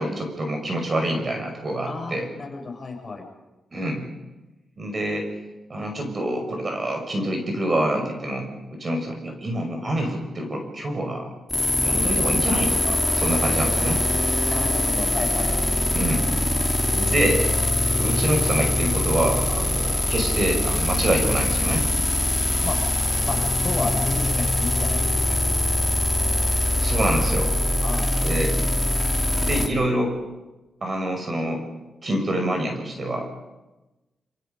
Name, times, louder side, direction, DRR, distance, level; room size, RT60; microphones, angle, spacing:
voice 1, 0.0-2.3 3.7-4.0 4.8-5.3 5.7-11.3 11.8-14.0 15.9-16.3 16.9-17.4 17.9-21.9 26.8-27.5 28.2-28.6 29.4-30.2 30.8-31.6 32.0-33.3, right 1 dB, 35° right, 4 dB, 5.9 m, -26 dB
voice 2, 1.9-3.2 14.4-15.5 22.6-22.8 23.2-25.9 27.8-28.2, left 4 dB, 35° left, 1 dB, 6.2 m, -33 dB
sound 1, 11.5-29.7, left 1 dB, 10° left, 3.1 m, -23 dB
26.5 x 26.0 x 5.4 m, 1.1 s
cardioid pair, 105°, 0 cm